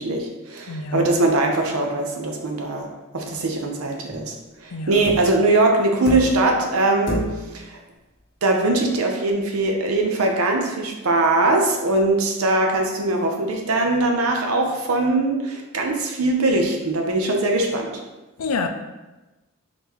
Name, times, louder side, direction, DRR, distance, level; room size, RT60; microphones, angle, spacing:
voice 1, 0.0-2.9 3.1-4.3 4.6-7.8 8.4-18.0, right 2 dB, 75° right, 0.7 m, -21 dB
voice 2, 0.7-1.1 4.7-5.1 18.4-18.7, left 4 dB, 80° left, 0.4 m, -27 dB
sound 1, 4.1-4.4 5.0-5.4 6.1-6.6 7.1-7.6 9.0-9.1, left 1 dB, 55° left, 1.3 m, -29 dB
4.0 x 3.7 x 3.0 m
head